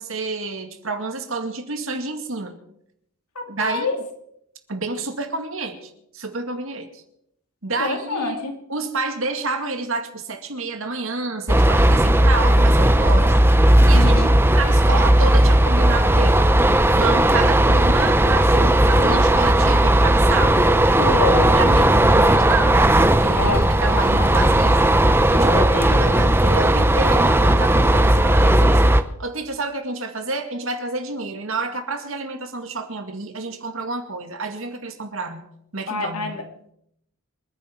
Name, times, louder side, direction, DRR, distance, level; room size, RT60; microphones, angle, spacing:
voice 1, 0.0-2.6 3.5-3.9 4.7-7.0 7.6-8.4 8.7-13.3 13.9-14.2 14.5-16.4 16.9-20.7 21.5-24.8 25.3-28.8 29.2-35.4 35.7-36.4, right 3 dB, 60° right, 6 dB, 2.2 m, -29 dB
voice 2, 3.3-4.0 7.8-8.5 13.9-14.3 21.0-21.6 23.4-23.7 25.3-26.3 35.9-36.4, left 3 dB, 90° left, 3 dB, 2.7 m, -26 dB
sound 1, 11.5-29.0, right 1 dB, 10° right, 0.7 m, -16 dB
27.5 x 10.0 x 4.6 m, 0.74 s
head